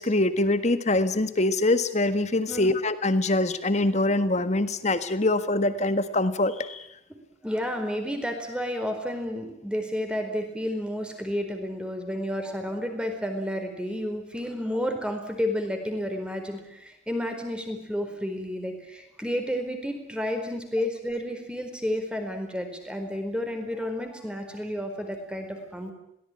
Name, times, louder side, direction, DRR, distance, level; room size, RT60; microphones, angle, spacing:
voice 1, 0.0-6.8, left 2 dB, 40° left, 12 dB, 1.6 m, -24 dB
voice 2, 7.4-25.9, equal, 5° right, 5 dB, 4.4 m, -31 dB
22.5 x 18.0 x 9.9 m, 0.80 s
head